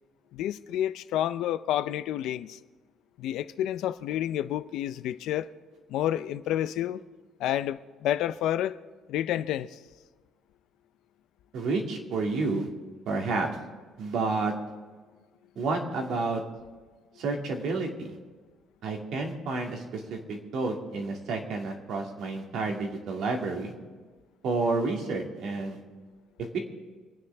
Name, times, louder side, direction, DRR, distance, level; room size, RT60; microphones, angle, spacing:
voice 1, 0.3-2.6 3.2-5.5 5.9-7.0 7.4-8.8 9.1-9.8, left 12 dB, 65° left, 0.5 m, -29 dB
voice 2, 11.5-12.7 13.1-13.5 14.0-14.5 15.6-16.4 17.2-18.2 18.8-23.7 24.4-25.8 26.5-26.6, right 3 dB, 55° right, 2.4 m, -30 dB
26.5 x 9.5 x 3.5 m
cardioid pair, 165°, 0 cm